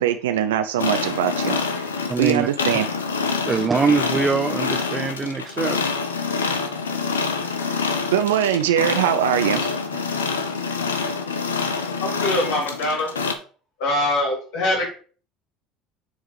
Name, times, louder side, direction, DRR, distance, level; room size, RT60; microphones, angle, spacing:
voice 1, 0.0-1.9 2.2-2.9 8.1-9.7, right 10 dB, 80° right, 8 dB, 0.5 m, -21 dB
sound 1, 0.8-13.3, left 5 dB, 90° left, 0.8 m, -26 dB
voice 2, 2.1-2.5 3.5-5.8, right 4 dB, 25° right, 6 dB, 0.6 m, -23 dB
voice 3, 12.0-13.1 13.8-14.9, left 1 dB, 65° left, -2 dB, 3.4 m, -23 dB
8.1 x 3.6 x 4.7 m, 0.40 s
hypercardioid pair, 70°, 0 cm